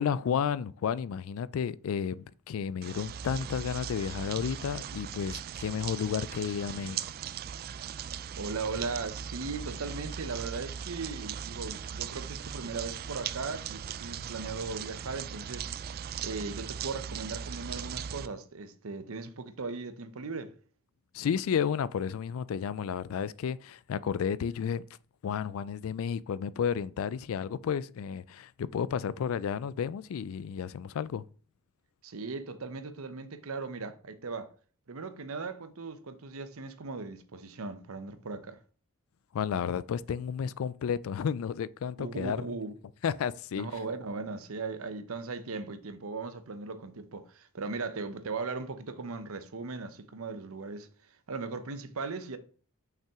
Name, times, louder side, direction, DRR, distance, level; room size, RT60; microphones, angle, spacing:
voice 1, 0.0-7.1 21.1-24.8 25.2-31.3 39.3-42.5 43.0-43.7, left 7 dB, 70° left, 0.3 m, -32 dB
sound 1, 2.8-18.3, right 8 dB, 45° right, 0.3 m, -39 dB
voice 2, 8.4-15.7 16.2-20.5 32.0-34.5 34.9-38.6 42.0-42.7 43.5-50.9 51.3-52.4, right 4 dB, 70° right, 0.7 m, -38 dB
5.8 x 5.7 x 3.6 m
head